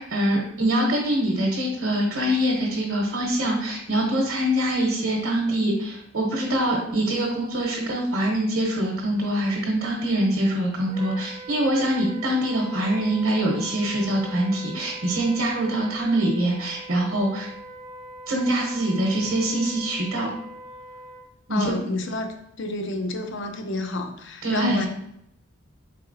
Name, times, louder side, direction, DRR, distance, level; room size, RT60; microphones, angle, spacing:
voice 1, 0.0-17.5 18.3-20.3 21.5-21.7 24.4-24.8, right 1 dB, 65° right, -1 dB, 0.9 m, -24 dB
Wind instrument woodwind instrument, 10.9-21.3, right 2 dB, 30° right, 0.3 m, -42 dB
voice 2, 21.5-24.9, left 2 dB, 60° left, 5 dB, 0.6 m, -29 dB
4.2 x 4.0 x 2.6 m, 0.77 s
head